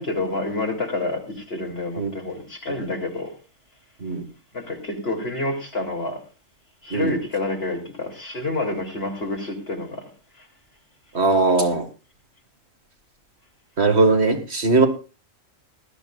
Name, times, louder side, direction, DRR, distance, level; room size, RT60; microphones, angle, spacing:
voice 1, 0.0-3.3 4.5-6.2 6.8-10.0 10.4-10.5, left 2 dB, 50° left, 3.4 m, -28 dB
voice 2, 11.1-11.8 13.8-14.9, right 3 dB, 50° right, 2.2 m, -19 dB
19.5 x 13.0 x 2.5 m
omnidirectional pair, 1.4 m